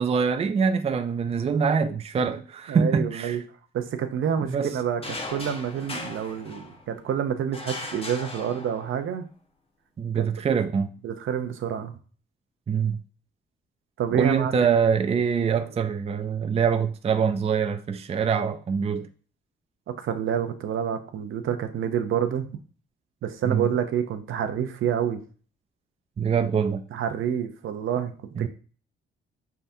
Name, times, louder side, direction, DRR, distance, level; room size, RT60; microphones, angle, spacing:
voice 1, 0.0-3.4 4.5-4.7 10.0-10.9 12.7-13.0 14.1-19.1 23.5-23.7 26.2-26.8 28.4-28.5, right 6 dB, 30° right, 0.4 m, -24 dB
voice 2, 2.7-3.4 3.7-9.2 10.1-10.3 11.0-11.9 14.0-14.5 19.9-22.5 23.2-25.2 26.9-28.5, right 8 dB, 70° right, 0.7 m, -28 dB
sound 1, 5.0-7.0 7.5-9.1, left 2 dB, 25° left, 1.1 m, -38 dB
5.6 x 3.5 x 2.7 m
cardioid pair, 75°, 21 cm